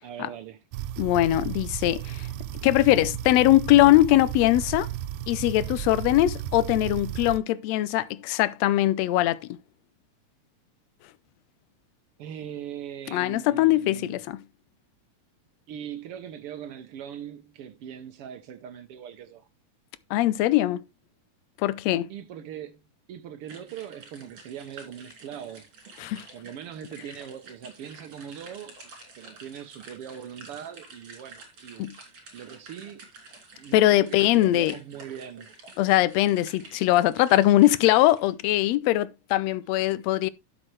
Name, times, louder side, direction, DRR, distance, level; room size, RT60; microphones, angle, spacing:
voice 1, 0.0-0.6 12.2-14.2 15.7-19.5 22.1-22.8 23.1-25.7 26.3-28.8 29.2-33.0 33.6-35.5, right 9 dB, 70° right, 1.4 m, -41 dB
sound 1, 0.7-7.4, right 12 dB, 90° right, 2.1 m, -34 dB
voice 2, 1.0-2.3 2.6-4.9 5.3-9.4 13.1-14.4 20.1-20.8 21.6-22.1 26.0-26.2 31.8-31.9 33.7-34.7 35.8-40.3, left 15 dB, 75° left, 1.6 m, -21 dB
sound 2, 23.4-38.3, right 3 dB, 45° right, 3.6 m, -49 dB
12.0 x 6.3 x 3.2 m
omnidirectional pair, 3.5 m